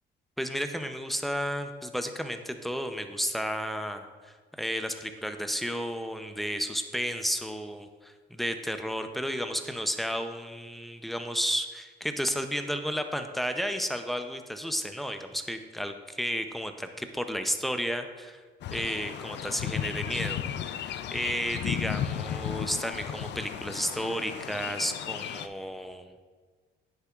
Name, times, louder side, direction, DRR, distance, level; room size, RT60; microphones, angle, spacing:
voice 1, 0.4-18.4 18.7-26.1, equal, ahead, 7 dB, 0.6 m, -32 dB
sound 1, 18.6-25.5, left 9 dB, 60° left, 0.4 m, -34 dB
9.6 x 6.8 x 2.4 m, 1.5 s
cardioid pair, 90°, 20 cm